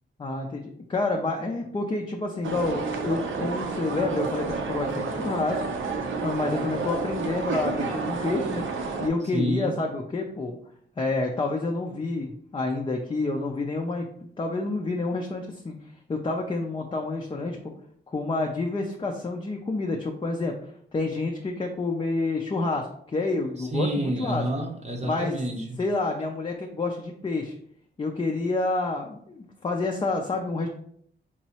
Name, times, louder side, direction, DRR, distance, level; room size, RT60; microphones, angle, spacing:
voice 1, 0.2-5.6 6.2-8.6 9.0-10.6 11.0-14.1 14.4-15.7 16.1-17.6 18.1-20.6 20.9-24.4 25.0-25.3 25.8-27.5 28.0-30.7, left 3 dB, 25° left, 1 dB, 0.4 m, -28 dB
sound 1, 2.4-9.1, right 4 dB, 75° right, 0.6 m, -30 dB
voice 2, 9.3-9.8 23.6-25.8, right 1 dB, 35° right, 2 dB, 0.7 m, -29 dB
4.5 x 3.0 x 2.8 m, 0.65 s
wide cardioid pair, 125°, 20 cm